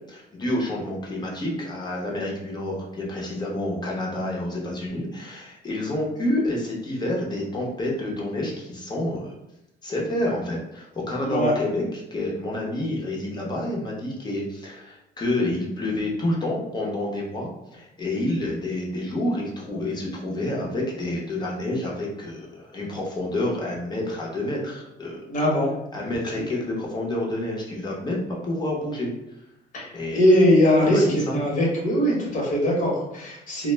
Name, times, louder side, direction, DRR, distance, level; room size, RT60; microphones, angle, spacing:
voice 1, 0.1-9.4 9.8-25.2 25.9-29.1 29.9-30.2 30.8-31.4, left 1 dB, 25° left, -2 dB, 0.7 m, -28 dB
voice 2, 25.3-25.7 26.3-26.4 29.7-29.9 30.1-33.7, equal, 50° left, -3 dB, 1.0 m, -21 dB
2.1 x 2.0 x 3.2 m, 0.86 s
cardioid pair, 110°, 17 cm